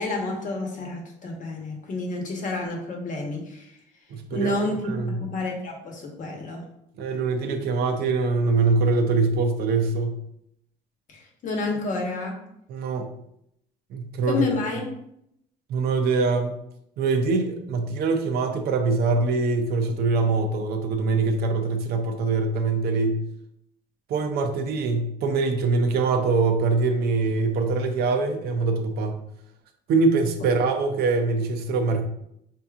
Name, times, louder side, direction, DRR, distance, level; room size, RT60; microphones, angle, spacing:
voice 1, 0.0-3.8 4.3-6.6 11.1-12.4 14.3-14.8, left 2 dB, 50° left, 1 dB, 1.0 m, -29 dB
voice 2, 4.1-4.6 4.9-5.2 7.0-10.2 12.7-13.1 13.9-14.5 15.7-16.6 17.0-23.2 24.1-29.2 29.9-32.0, right 3 dB, 70° right, 5 dB, 0.6 m, -23 dB
4.6 x 2.7 x 2.4 m, 0.76 s
cardioid pair, 110°, 17 cm